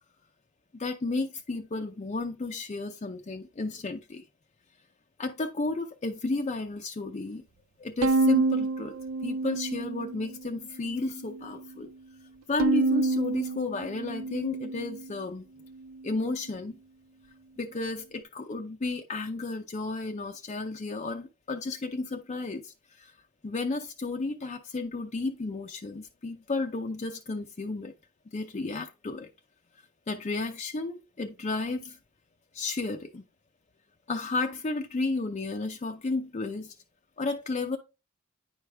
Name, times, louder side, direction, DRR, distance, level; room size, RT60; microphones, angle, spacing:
voice 1, 0.7-4.2 5.2-7.4 7.8-8.9 9.2-11.9 12.5-15.5 16.0-16.7 17.6-23.2 23.4-27.9 28.3-29.3 30.1-32.0 32.5-33.2 34.1-36.7 37.2-37.8, left 3 dB, 30° left, 0.5 m, -33 dB
Bowed string instrument, 8.0-10.4 10.8-11.6 12.6-15.1, right 3 dB, 65° right, 0.4 m, -28 dB
9.4 x 4.8 x 3.3 m
head